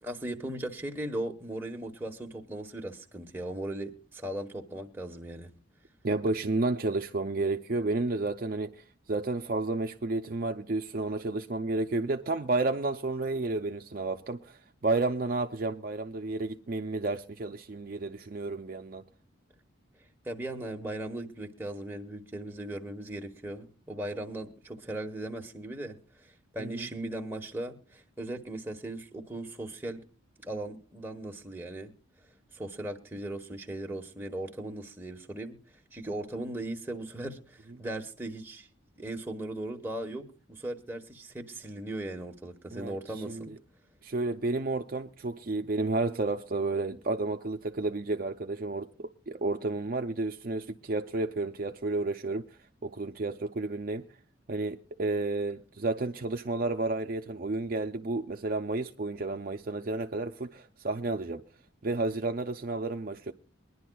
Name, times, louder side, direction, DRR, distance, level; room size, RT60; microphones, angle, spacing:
voice 1, 0.0-5.6 20.2-30.0 30.4-31.9 32.5-35.6 35.9-38.7 39.0-43.5, right 1 dB, 10° right, 1.2 m, -38 dB
voice 2, 6.0-19.0 26.6-26.9 42.7-43.0 43.3-43.5 44.0-52.4 52.8-54.0 54.5-61.4 61.8-63.3, right 3 dB, 45° right, 0.5 m, -31 dB
23.0 x 11.0 x 2.3 m
head